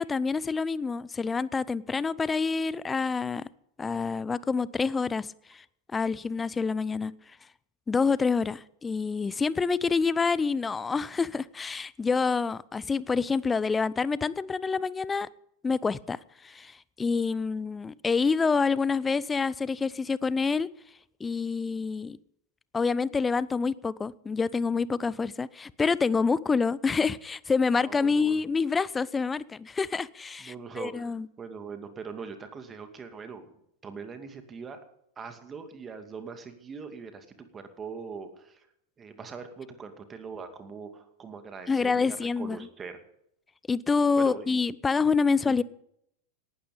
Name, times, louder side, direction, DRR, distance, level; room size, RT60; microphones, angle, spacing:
voice 1, 0.0-3.5 3.8-5.3 5.5-5.6 5.9-7.1 7.9-15.3 15.6-20.7 21.2-22.2 22.7-31.3 41.7-42.6 43.7-45.6, left 4 dB, 15° left, 21 dB, 0.6 m, -27 dB
voice 2, 27.8-28.4 30.4-33.5 33.8-34.8 35.2-37.3 37.5-38.7 39.0-43.0 44.2-44.5 45.4-45.6, right 5 dB, 20° right, 7 dB, 2.5 m, -41 dB
18.0 x 12.5 x 5.4 m, 0.72 s
figure-of-eight pair, 90°, 0 cm